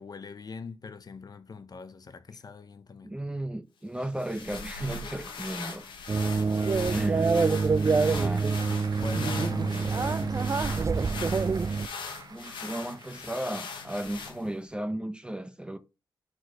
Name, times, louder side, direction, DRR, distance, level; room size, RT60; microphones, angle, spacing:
voice 1, 0.0-3.1 6.3-6.7 8.6-10.6, left 5 dB, 55° left, 0.8 m, -43 dB
voice 2, 3.0-5.9 6.9-7.3 8.0-8.5 9.7-9.9 12.3-15.8, right 1 dB, 10° right, 0.8 m, -35 dB
sound 1, 4.0-14.6, left 4 dB, 90° left, 1.2 m, -40 dB
sound 2, 6.1-11.9, right 4 dB, 40° right, 0.4 m, -26 dB
Applause / Crowd, 7.4-13.4, right 4 dB, 60° right, 1.0 m, -49 dB
4.5 x 4.4 x 4.6 m
supercardioid pair, 45°, 8 cm